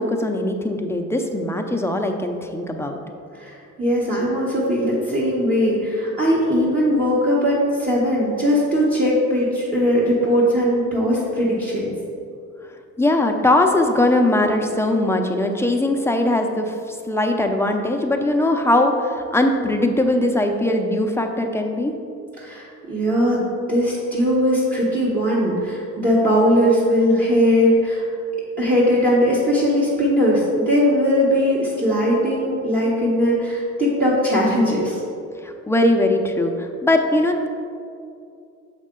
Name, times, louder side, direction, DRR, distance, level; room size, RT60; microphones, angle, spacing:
voice 1, 0.0-3.0 13.0-22.0 35.4-37.5, left 1 dB, 10° left, 3 dB, 0.6 m, -20 dB
voice 2, 3.3-11.9 22.4-28.0 28.6-35.0, equal, 30° right, -6 dB, 1.2 m, -19 dB
6.5 x 5.3 x 3.8 m, 2.5 s
cardioid pair, 90°, 30 cm